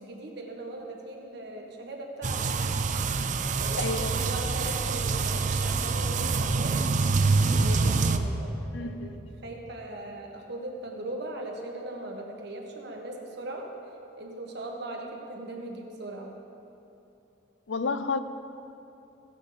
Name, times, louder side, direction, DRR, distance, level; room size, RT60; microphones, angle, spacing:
voice 1, 0.0-2.6 3.5-6.8 7.5-13.7 14.2-16.3, right 1 dB, 60° right, 1 dB, 1.5 m, -39 dB
sound 1, 2.2-8.2, right 4 dB, 40° right, 0.5 m, -26 dB
voice 2, 3.8-4.2 8.7-9.2 17.7-18.2, left 4 dB, 75° left, 11 dB, 0.6 m, -31 dB
15.5 x 9.9 x 4.0 m, 2.8 s
head